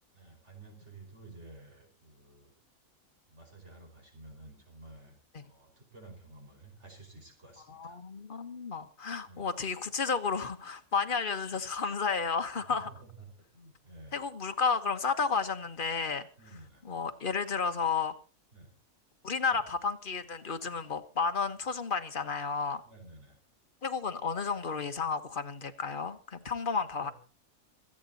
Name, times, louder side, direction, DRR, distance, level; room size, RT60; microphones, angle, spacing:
voice 1, 0.1-2.5 3.3-8.0 9.3-9.5 12.6-13.3 13.5-14.2 16.4-16.9 18.5-18.7 19.5-19.6 22.9-23.4 27.0-27.1, right 2 dB, 50° right, 5.2 m, -52 dB
voice 2, 7.7-12.9 14.1-16.3 16.8-18.1 19.2-22.8 23.8-27.1, left 5 dB, 40° left, 1.3 m, -32 dB
26.5 x 8.8 x 4.1 m
omnidirectional pair, 1.5 m